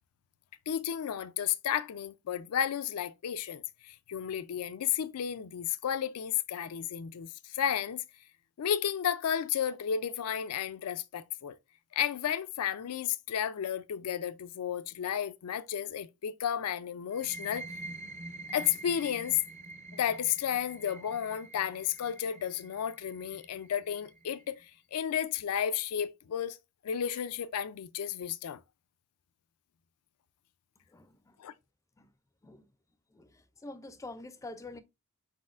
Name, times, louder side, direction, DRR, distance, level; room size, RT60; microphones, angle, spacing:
voice 1, 0.7-8.0 8.6-11.5 11.9-17.6 18.5-19.4 19.9-24.6 24.9-26.6 26.8-28.6 31.4-31.5, left 9 dB, 85° left, 0.4 m, -32 dB
sound 1, 17.1-24.6, right 2 dB, 35° right, 0.5 m, -46 dB
voice 2, 30.9-31.4 32.0-32.1 32.4-32.7 33.1-34.8, left 2 dB, 15° left, 0.4 m, -46 dB
4.2 x 4.1 x 2.4 m
head